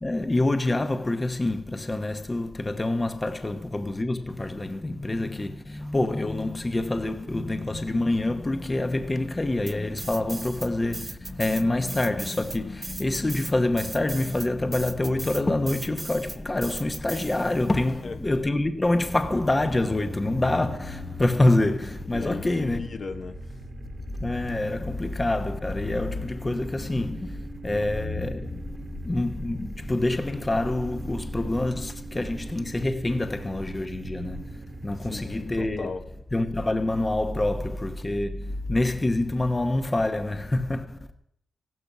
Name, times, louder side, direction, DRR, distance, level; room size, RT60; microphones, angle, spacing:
voice 1, 0.0-22.8 24.2-35.9 36.3-41.0, left 2 dB, 20° left, 1.0 m, -26 dB
sound 1, 9.7-10.7 10.9-17.8, right 3 dB, 25° right, 0.8 m, -38 dB
voice 2, 17.9-18.3 22.0-23.5 35.0-36.1, left 4 dB, 50° left, 1.2 m, -37 dB
sound 2, 19.0-36.0, right 3 dB, 45° right, 1.5 m, -43 dB
15.5 x 12.0 x 6.0 m
wide cardioid pair, 110°, 0 cm